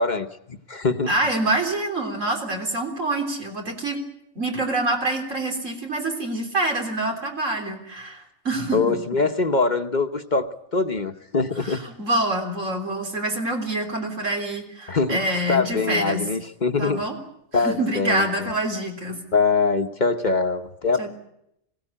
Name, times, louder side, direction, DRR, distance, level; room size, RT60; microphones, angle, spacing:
voice 1, 0.0-1.1 8.7-11.8 14.9-17.0 17.5-18.5 19.3-21.1, left 4 dB, 40° left, 8 dB, 1.0 m, -23 dB
voice 2, 1.1-4.0 4.4-9.0 11.6-16.3 16.8-17.1 17.5-19.2 21.0-21.1, right 2 dB, 85° right, 2 dB, 4.1 m, -26 dB
21.5 x 17.0 x 10.0 m, 0.79 s
omnidirectional pair, 1.3 m